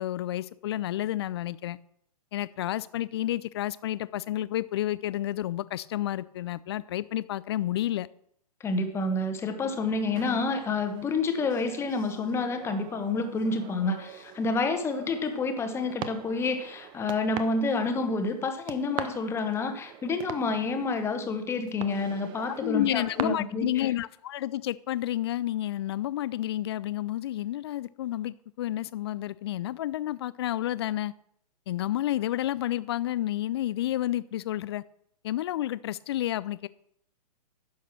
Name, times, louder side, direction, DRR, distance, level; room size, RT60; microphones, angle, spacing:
voice 1, 0.0-1.8 2.3-8.1 22.6-31.1 31.7-34.8 35.2-36.7, left 13 dB, 40° left, 18 dB, 0.4 m, -30 dB
voice 2, 8.6-23.8, left 3 dB, 10° left, 8 dB, 1.1 m, -29 dB
sound 1, 9.6-23.2, right 11 dB, 20° right, 0.7 m, -43 dB
10.5 x 6.5 x 6.0 m, 0.71 s
figure-of-eight pair, 120°, 20 cm